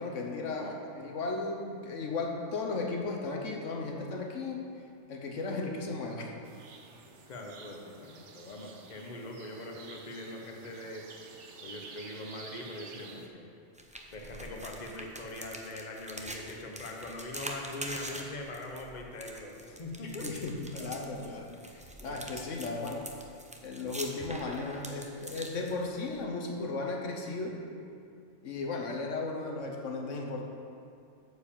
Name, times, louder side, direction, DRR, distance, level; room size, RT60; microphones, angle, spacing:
voice 1, 0.0-4.6 5.1-6.3 20.0-23.1 23.6-27.6 28.4-30.4, left 3 dB, 80° left, 1 dB, 1.3 m, -35 dB
sound 1, 6.4-13.3, right 4 dB, 70° right, 1.1 m, -50 dB
voice 2, 7.1-11.1 11.6-13.5 14.1-20.3 20.7-20.9 22.0-22.2, left 2 dB, 40° left, 1 dB, 1.0 m, -42 dB
sound 2, 13.7-26.2, right 1 dB, 10° right, 0.4 m, -44 dB
9.2 x 5.0 x 7.2 m, 2.4 s
omnidirectional pair, 1.3 m